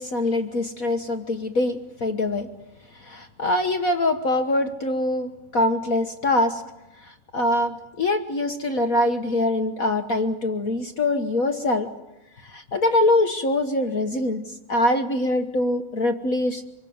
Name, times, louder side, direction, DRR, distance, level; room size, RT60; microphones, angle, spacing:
voice 1, 0.0-2.5 3.0-6.6 7.0-11.9 12.4-14.4 14.7-16.6, left 1 dB, 65° left, 7 dB, 0.8 m, -23 dB
26.5 x 22.5 x 9.5 m, 1.0 s
omnidirectional pair, 3.5 m